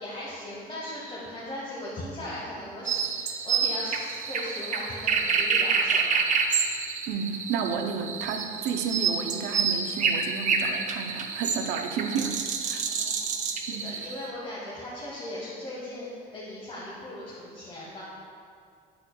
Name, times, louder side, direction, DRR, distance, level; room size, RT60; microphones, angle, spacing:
voice 1, 0.0-6.2 12.8-18.0, left 1 dB, 35° left, -8 dB, 1.5 m, -38 dB
sound 1, 2.9-14.3, right 5 dB, 45° right, 0.6 m, -28 dB
voice 2, 7.1-12.8 13.7-14.0, right 6 dB, 85° right, 5 dB, 0.6 m, -32 dB
8.6 x 7.5 x 2.3 m, 2.3 s
cardioid pair, 110°, 17 cm